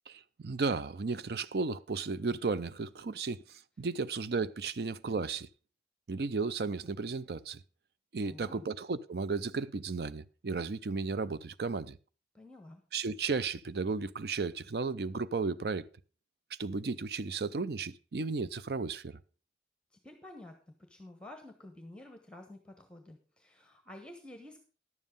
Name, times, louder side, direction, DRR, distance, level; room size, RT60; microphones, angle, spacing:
voice 1, 0.1-5.5 6.1-7.6 8.1-12.0 12.9-15.9 16.6-19.2, right 4 dB, 65° right, 0.5 m, -34 dB
voice 2, 8.2-8.7 12.3-12.8 20.0-24.6, left 1 dB, 5° left, 1.1 m, -50 dB
11.0 x 7.4 x 5.3 m
head